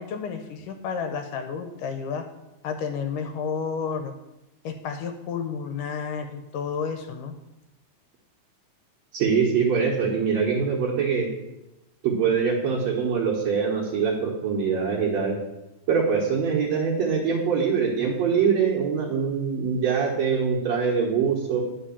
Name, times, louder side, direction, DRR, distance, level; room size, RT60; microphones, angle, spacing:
voice 1, 0.0-2.3 2.6-4.1 4.6-7.3, left 6 dB, 75° left, 6 dB, 2.2 m, -31 dB
voice 2, 9.1-11.3 12.0-15.4 15.9-21.6, right 6 dB, 60° right, -4 dB, 2.4 m, -23 dB
10.0 x 5.3 x 7.1 m, 0.95 s
omnidirectional pair, 4.0 m